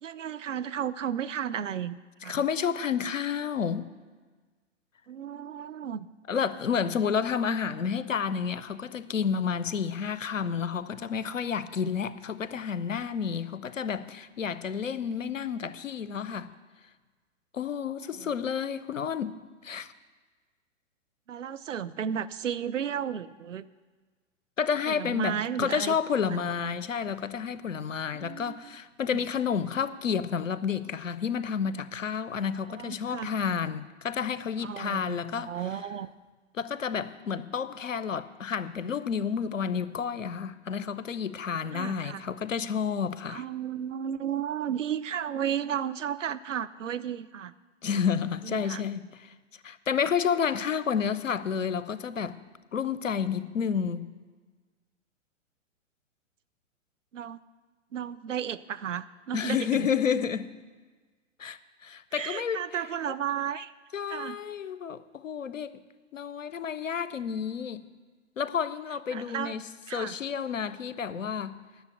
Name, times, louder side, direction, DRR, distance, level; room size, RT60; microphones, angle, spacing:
voice 1, 0.0-2.4 5.1-6.1 18.2-18.3 21.3-23.7 24.9-26.0 26.6-26.7 28.1-28.6 29.1-29.2 32.7-33.3 34.6-36.1 41.7-42.2 43.3-47.5 48.4-48.8 57.1-57.4 57.9-59.8 62.1-63.7 64.1-64.4 69.1-69.5 69.9-70.1, right 9 dB, 75° right, 0.6 m, -33 dB
voice 2, 2.2-3.9 6.3-16.5 17.5-19.9 24.6-35.6 36.5-43.4 47.8-49.3 49.6-52.4 52.7-54.1 59.3-60.6 61.4-63.1 63.9-65.8 66.1-67.9 68.4-69.6 69.9-71.6, left 7 dB, 80° left, 0.7 m, -30 dB
10.5 x 6.7 x 8.1 m
figure-of-eight pair, 115°, 38 cm